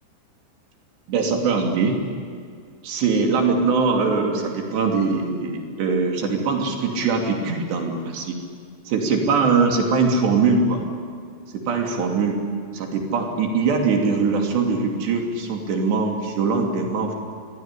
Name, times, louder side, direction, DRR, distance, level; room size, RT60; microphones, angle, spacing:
voice 1, 1.1-2.0 2.8-8.4 8.9-10.8 11.5-12.4 12.7-17.1, right 4 dB, 85° right, 1 dB, 5.0 m, -22 dB
26.0 x 22.0 x 9.9 m, 2.1 s
omnidirectional pair, 4.8 m